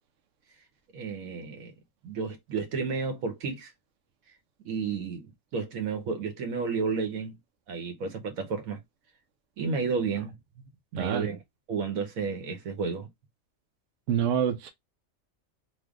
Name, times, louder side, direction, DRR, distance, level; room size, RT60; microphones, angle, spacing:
voice 1, 0.9-1.7 2.0-3.7 4.6-7.4 7.7-8.8 9.6-10.4 10.9-11.4 11.7-13.1, right 5 dB, 80° right, 1.3 m, -32 dB
voice 2, 11.0-11.3 14.1-14.7, right 8 dB, 60° right, 0.9 m, -26 dB
3.2 x 2.2 x 3.5 m
omnidirectional pair, 1.4 m